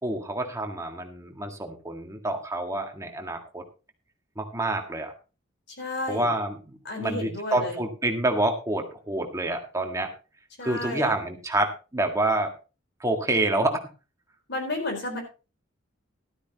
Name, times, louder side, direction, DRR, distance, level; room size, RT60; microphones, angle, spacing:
voice 1, 0.0-3.6 4.4-5.1 6.1-10.1 10.6-12.5 13.0-13.8, right 2 dB, 15° right, 4 dB, 1.7 m, -27 dB
voice 2, 5.8-6.3 6.8-7.8 10.6-11.1 14.5-15.2, left 2 dB, 60° left, 4 dB, 4.3 m, -32 dB
13.0 x 12.5 x 2.9 m, 0.31 s
head